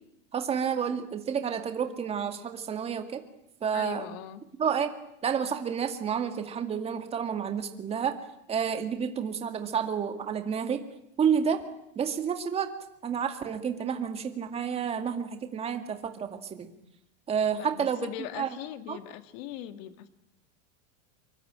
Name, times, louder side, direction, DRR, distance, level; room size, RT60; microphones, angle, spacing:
voice 1, 0.3-3.2 3.6-4.2 4.6-4.9 5.2-8.2 8.5-10.8 11.2-11.6 12.0-12.7 13.0-16.7 17.3-18.1 18.4-18.5 18.9-19.0, right 7 dB, 15° right, 7 dB, 2.1 m, -30 dB
voice 2, 3.7-4.5 17.6-20.1, left 12 dB, 40° left, 10 dB, 2.1 m, -40 dB
26.0 x 23.0 x 8.9 m, 0.80 s
supercardioid pair, 165°, 39 cm